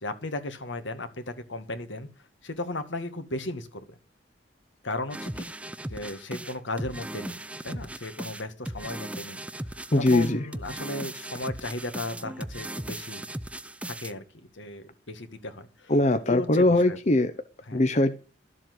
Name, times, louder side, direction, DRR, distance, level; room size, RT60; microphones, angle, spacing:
voice 1, 0.0-2.1 2.4-3.8 4.8-5.4 5.9-7.4 7.6-13.2 13.9-15.9 16.3-17.0 17.7-17.8, left 2 dB, 80° left, 8 dB, 2.0 m, -35 dB
sound 1, 5.1-14.1, right 1 dB, 5° right, 0.6 m, -37 dB
voice 2, 9.9-10.4 15.9-17.3 17.7-18.2, left 2 dB, 40° left, 9 dB, 0.9 m, -21 dB
13.0 x 7.5 x 7.8 m, 0.35 s
head